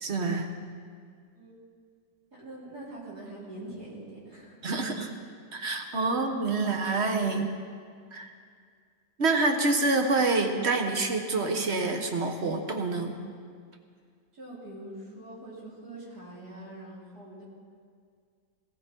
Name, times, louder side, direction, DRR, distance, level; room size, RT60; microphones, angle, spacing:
voice 1, 0.0-0.5 4.6-5.1 5.5-7.5 8.1-8.3 9.2-13.2, right 3 dB, 40° right, 4 dB, 1.4 m, -27 dB
voice 2, 2.4-5.0 6.1-6.3 14.3-17.4, right 1 dB, 60° right, -7 dB, 4.6 m, -44 dB
19.0 x 15.5 x 4.6 m, 2.1 s
omnidirectional pair, 1.9 m